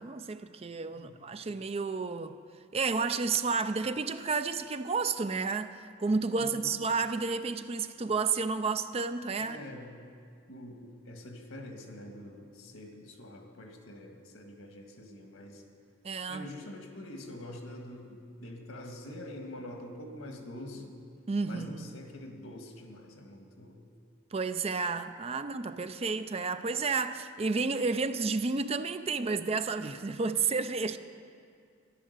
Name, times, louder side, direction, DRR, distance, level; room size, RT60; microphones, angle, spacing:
voice 1, 0.0-2.4 2.7-9.6 16.0-16.5 21.3-21.9 24.3-31.0, right 4 dB, 30° right, 0.4 m, -31 dB
voice 2, 6.4-6.8 9.4-10.0 10.5-15.6 16.3-21.0 21.4-23.9, left 1 dB, 90° left, 1.7 m, -45 dB
13.5 x 11.0 x 6.6 m
head